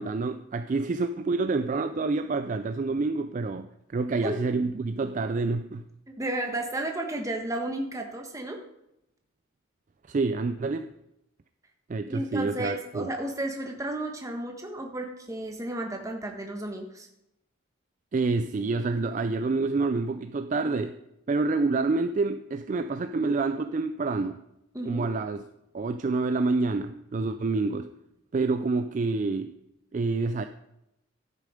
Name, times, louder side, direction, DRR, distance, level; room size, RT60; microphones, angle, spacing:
voice 1, 0.0-5.9 10.1-10.9 11.9-13.1 18.1-21.0 21.3-24.4 24.9-25.4 25.7-27.9 28.3-29.6 29.9-30.5, right 3 dB, 40° right, 9 dB, 0.3 m, -27 dB
voice 2, 6.2-8.6 12.1-17.1 24.7-25.1, right 1 dB, 15° right, 3 dB, 1.3 m, -33 dB
12.0 x 6.7 x 5.0 m, 0.85 s
head